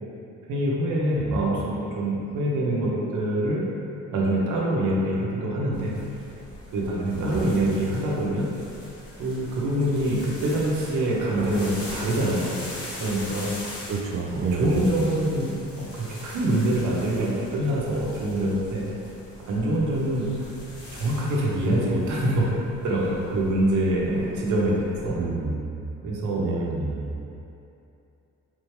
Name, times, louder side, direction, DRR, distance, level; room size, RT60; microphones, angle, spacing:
voice 1, 0.5-3.6 4.1-6.0 6.7-8.5 9.2-12.6 13.0-13.5 14.3-18.8 19.4-20.3 20.9-22.5 22.8-25.2 26.0-26.4, right 1 dB, 80° right, -4 dB, 0.9 m, -25 dB
sound 1, 5.7-25.1, left 1 dB, 50° left, 1.1 m, -41 dB
Insect / Thunder / Rain, 10.7-14.9 15.3-15.5, equal, 25° right, 1.1 m, -40 dB
voice 2, 13.9-14.7 25.2-25.8 26.4-27.1, right 4 dB, 45° right, 1 dB, 0.5 m, -29 dB
3.7 x 3.2 x 3.2 m, 2.7 s
cardioid pair, 90°, 30 cm